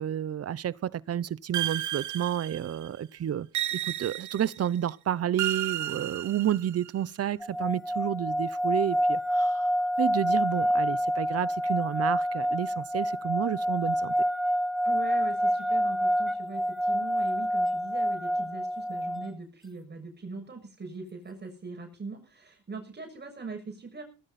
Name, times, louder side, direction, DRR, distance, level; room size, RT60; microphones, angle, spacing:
voice 1, 0.0-3.5 3.7-9.7 10.0-14.1, right 10 dB, 55° right, 0.9 m, -30 dB
sound 1, 1.5-2.9 3.5-4.7 5.4-6.9, right 13 dB, 75° right, 1.3 m, -33 dB
sound 2, 7.4-19.3, equal, ahead, 0.9 m, -27 dB
voice 2, 14.8-24.0, right 4 dB, 35° right, 6.6 m, -41 dB
19.0 x 14.0 x 4.3 m
cardioid pair, 90°, 30 cm